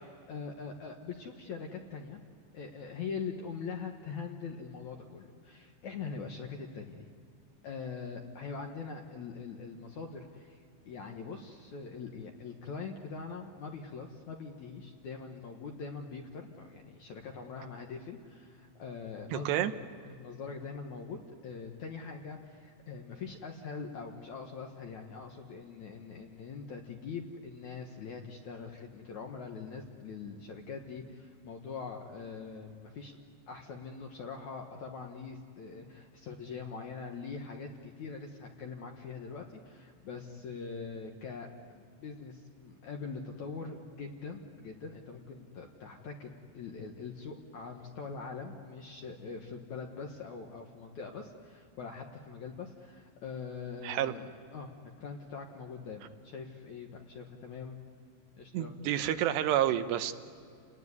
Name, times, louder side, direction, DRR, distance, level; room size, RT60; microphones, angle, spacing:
voice 1, 0.3-2.2 2.5-7.1 7.6-19.7 20.0-33.1 33.5-57.8 58.4-58.7, left 5 dB, 60° left, 2 dB, 2.0 m, -43 dB
voice 2, 19.3-19.7 53.8-54.1 58.5-60.1, right 12 dB, 80° right, 10 dB, 2.9 m, -29 dB
30.0 x 19.5 x 9.7 m, 2.4 s
omnidirectional pair, 5.1 m